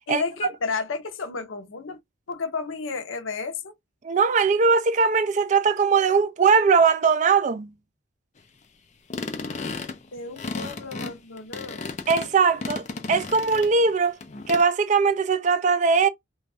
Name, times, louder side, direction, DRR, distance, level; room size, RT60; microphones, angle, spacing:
voice 1, 0.1-2.0 2.3-3.7 10.1-12.0, left 4 dB, 90° left, 0.6 m, -32 dB
voice 2, 4.0-7.7 12.1-14.2 14.5-16.1, right 5 dB, 40° right, 0.3 m, -20 dB
sound 1, 9.1-13.9 14.2-14.6, left 3 dB, 35° left, 0.5 m, -34 dB
2.5 x 2.3 x 3.2 m
head